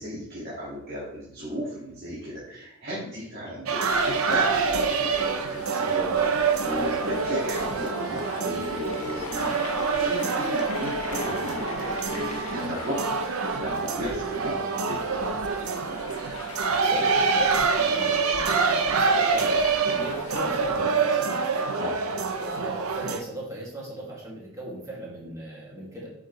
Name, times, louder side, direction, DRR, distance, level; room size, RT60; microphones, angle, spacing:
voice 1, 0.0-13.0 13.5-15.2 19.9-20.1 21.8-22.0, equal, 45° right, -7 dB, 2.1 m, -35 dB
sound 1, 3.7-23.2, right 4 dB, 85° right, 0.8 m, -26 dB
sound 2, 3.9-20.8, left 4 dB, 75° left, 0.8 m, -42 dB
voice 2, 16.8-19.5 20.0-21.4 22.4-26.1, right 1 dB, 15° right, -5 dB, 2.3 m, -38 dB
8.1 x 5.8 x 3.2 m, 0.84 s
head